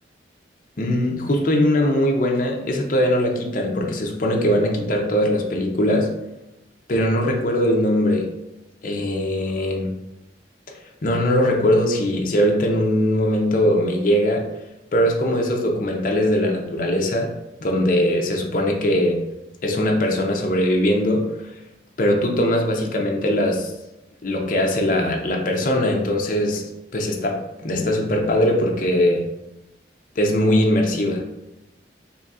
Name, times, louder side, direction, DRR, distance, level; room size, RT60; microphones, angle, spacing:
voice 1, 0.8-6.1 6.9-8.3 8.8-10.0 11.0-14.5 14.9-17.4 17.6-19.2 19.6-21.3 22.0-23.7 24.2-26.7 26.9-29.3 30.2-31.3, left 1 dB, 45° left, 1 dB, 0.5 m, -21 dB
4.0 x 3.0 x 2.4 m, 0.94 s
head